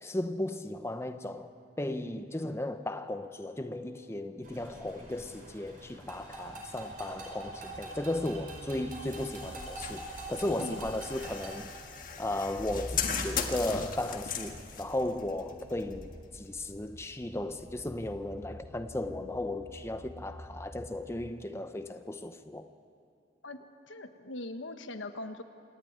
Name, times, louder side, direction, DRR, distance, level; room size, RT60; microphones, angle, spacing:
voice 1, 0.0-1.5 1.8-11.7 12.2-22.7, left 1 dB, 15° left, 0.6 m, -35 dB
sound 1, 4.4-11.6, right 2 dB, 45° right, 5.0 m, -45 dB
sound 2, 7.6-21.3, equal, 15° right, 0.9 m, -48 dB
sound 3, 8.9-16.8, left 6 dB, 45° left, 1.5 m, -39 dB
voice 2, 23.9-25.4, left 2 dB, 85° left, 1.2 m, -41 dB
27.0 x 11.0 x 9.3 m
head